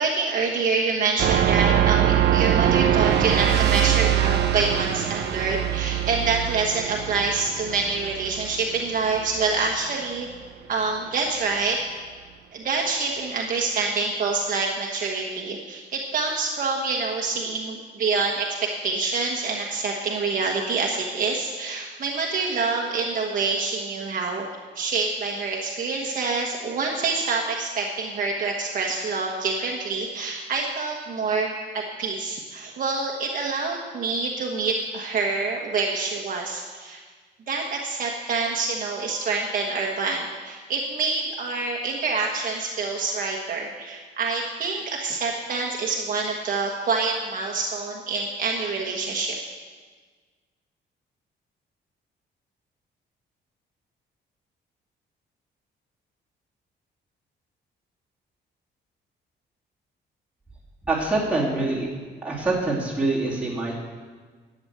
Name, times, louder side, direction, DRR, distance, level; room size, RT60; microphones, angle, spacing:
voice 1, 0.0-10.3 10.7-11.8 12.5-24.5 24.7-37.0 37.5-49.4, right 4 dB, 50° right, 0 dB, 1.3 m, -26 dB
sound 1, 1.2-9.7, right 11 dB, 65° right, 0.8 m, -23 dB
voice 2, 60.9-61.9 62.2-63.7, right 2 dB, 5° right, -6 dB, 3.1 m, -25 dB
12.0 x 8.0 x 8.6 m, 1.5 s
cardioid pair, 170°, 18 cm